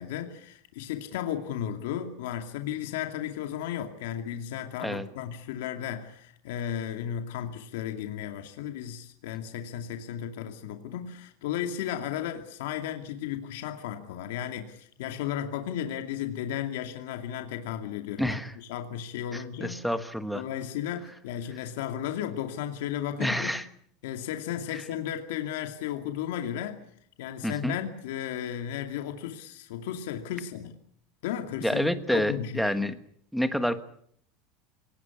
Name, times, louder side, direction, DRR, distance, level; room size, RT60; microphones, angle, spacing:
voice 1, 0.0-19.8 20.3-23.6 24.0-26.8 27.2-30.8 31.2-32.9, left 10 dB, 80° left, 2.5 m, -34 dB
voice 2, 18.2-18.5 19.3-20.4 23.2-23.6 24.7-24.8 27.4-27.8 31.6-33.0 33.3-33.8, equal, ahead, 1.4 m, -28 dB
27.5 x 19.0 x 8.5 m
supercardioid pair, 165°, 0 cm